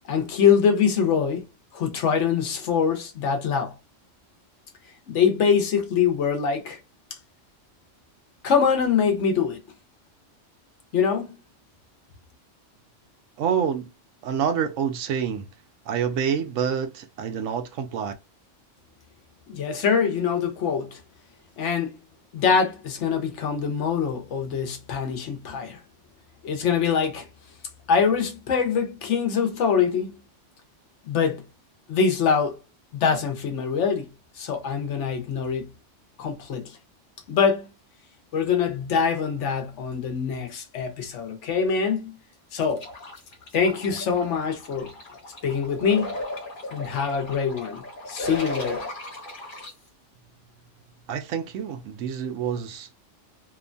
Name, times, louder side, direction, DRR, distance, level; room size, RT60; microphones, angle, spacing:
voice 1, 0.1-1.5 1.7-3.8 5.1-6.8 8.4-9.6 10.9-11.4 19.5-21.0 21.6-21.9 22.3-25.8 26.4-27.3 27.9-30.1 31.0-31.5 31.9-32.6 32.9-34.1 34.4-35.7 36.2-36.8 37.3-37.7 38.3-42.2 42.5-42.9 43.5-44.9 45.4-46.1 46.7-48.9, left 6 dB, 70° left, 1.0 m, -24 dB
voice 2, 13.4-13.9 14.2-15.5 15.9-18.1 51.1-52.9, right 7 dB, 80° right, 0.9 m, -27 dB
sound 1, 42.8-49.7, left 1 dB, 45° left, 0.9 m, -36 dB
2.9 x 2.1 x 2.5 m
omnidirectional pair, 1.3 m